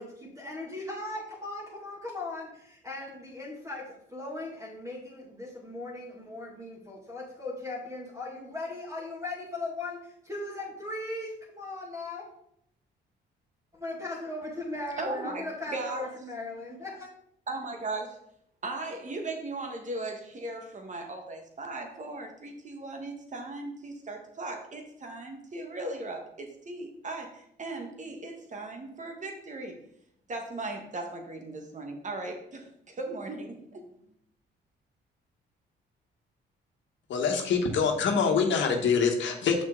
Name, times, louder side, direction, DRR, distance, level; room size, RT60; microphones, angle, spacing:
voice 1, 0.0-12.3 13.7-17.1, left 2 dB, 15° right, -5 dB, 2.3 m, -38 dB
voice 2, 15.0-16.1 17.5-18.2 18.6-29.8 30.3-33.8, right 2 dB, 40° right, 4 dB, 1.6 m, -37 dB
voice 3, 37.1-39.6, left 5 dB, 70° left, 3 dB, 1.4 m, -25 dB
6.6 x 6.0 x 3.8 m, 0.72 s
cardioid pair, 90°, 20 cm